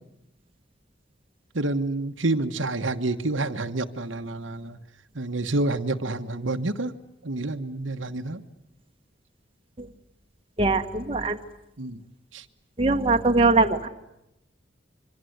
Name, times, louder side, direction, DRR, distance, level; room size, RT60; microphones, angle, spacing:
voice 1, 1.5-4.8 5.1-6.9 7.2-8.4 11.8-12.0 12.3-12.4, right 2 dB, 80° right, 7 dB, 1.4 m, -28 dB
voice 2, 10.6-11.4 12.8-13.9, right 3 dB, 30° right, 5 dB, 1.3 m, -21 dB
26.0 x 24.5 x 8.1 m, 0.85 s
head